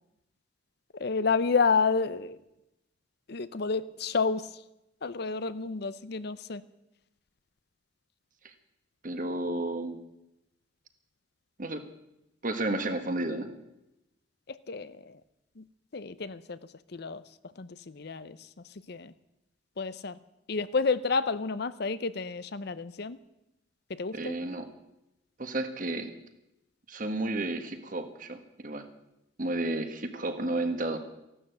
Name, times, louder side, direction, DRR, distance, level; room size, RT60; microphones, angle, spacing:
voice 1, 0.9-2.4 3.3-4.6 5.0-6.6 14.5-15.2 15.6-15.7 15.9-16.6 16.9-17.2 17.6-18.5 18.9-19.1 19.8-20.2 20.5-23.2 23.9-24.4, left 4 dB, 55° left, 15 dB, 0.6 m, -30 dB
voice 2, 9.0-10.0 11.6-11.8 12.4-13.6 24.1-24.7 25.4-26.1 26.9-28.9 29.4-31.0, right 2 dB, 40° right, 8 dB, 1.5 m, -32 dB
15.0 x 12.0 x 8.0 m, 0.90 s
head